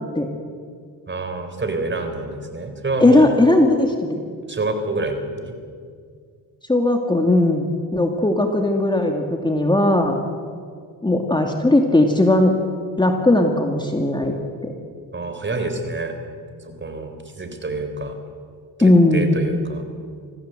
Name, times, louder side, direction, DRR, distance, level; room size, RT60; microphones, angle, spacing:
voice 1, 1.1-3.3 4.5-5.5 15.1-16.1 16.6-18.2 18.8-19.8, right 2 dB, 30° right, 6 dB, 4.1 m, -27 dB
voice 2, 3.0-4.2 6.7-10.2 11.0-12.6 13.0-14.4 14.6-14.7 18.8-19.4, left 1 dB, 10° left, 3 dB, 2.3 m, -17 dB
26.0 x 17.0 x 7.9 m, 2.1 s
cardioid pair, 90°, 39 cm